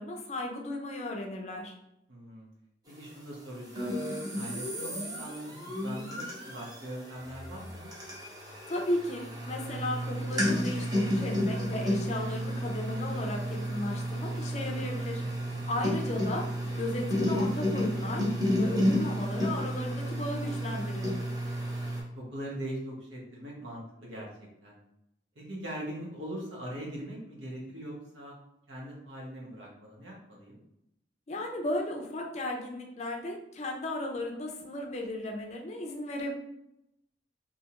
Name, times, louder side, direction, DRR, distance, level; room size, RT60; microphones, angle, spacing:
voice 1, 0.0-1.7 8.7-15.2 15.7-16.5 16.8-18.3 18.6-21.1 31.3-36.3, left 1 dB, 35° left, 1 dB, 0.4 m, -35 dB
voice 2, 2.1-2.5 2.9-3.9 4.3-7.9 15.2-15.6 22.1-24.3 24.6-24.8 25.3-28.3 28.7-30.6, right 1 dB, 85° right, -4 dB, 1.0 m, -41 dB
sound 1, 3.7-22.0, equal, 20° right, 0.6 m, -32 dB
2.7 x 2.4 x 2.8 m, 0.83 s
head